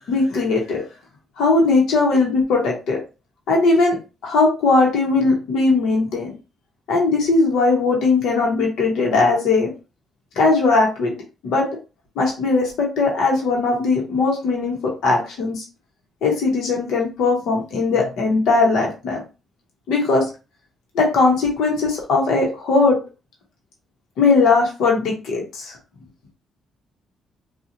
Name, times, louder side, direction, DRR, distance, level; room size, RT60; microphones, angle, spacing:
voice 1, 0.1-0.8 1.4-3.0 3.5-4.0 4.2-6.3 6.9-9.7 10.4-11.1 11.4-11.7 12.2-15.6 16.2-19.2 19.9-20.3 20.9-23.0 24.2-25.8, left 3 dB, 80° left, -1 dB, 0.9 m, -19 dB
2.8 x 2.3 x 2.6 m, 0.30 s
cardioid pair, 90°, 0 cm